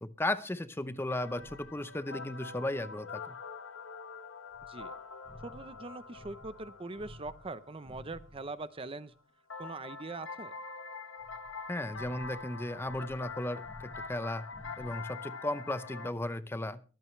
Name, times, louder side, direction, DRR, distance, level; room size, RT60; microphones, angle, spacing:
voice 1, 0.0-3.3 11.7-14.5 14.8-16.8, left 1 dB, 10° left, 12 dB, 0.6 m, -35 dB
sound 1, 1.1-8.5 9.5-16.1, left 4 dB, 85° left, 1.1 m, -45 dB
sound 2, 1.3-2.0 4.5-8.6 11.2-15.2, equal, 30° left, 2.1 m, -54 dB
voice 2, 5.4-9.1 9.6-10.5, right 3 dB, 30° right, 14 dB, 0.6 m, -42 dB
23.0 x 9.1 x 3.2 m, 0.37 s
head